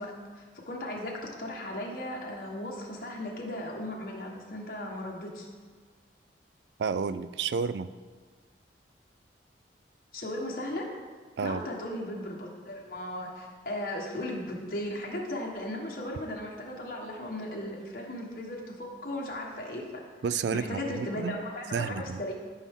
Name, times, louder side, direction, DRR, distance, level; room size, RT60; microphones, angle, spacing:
voice 1, 0.0-5.5 10.1-10.9 11.4-19.9 20.5-22.3, left 1 dB, 50° left, -2 dB, 1.4 m, -36 dB
voice 2, 6.8-7.9 11.4-11.6 20.2-21.4 21.7-22.2, right 5 dB, 75° right, 14 dB, 0.4 m, -31 dB
13.0 x 5.7 x 3.7 m, 1.5 s
head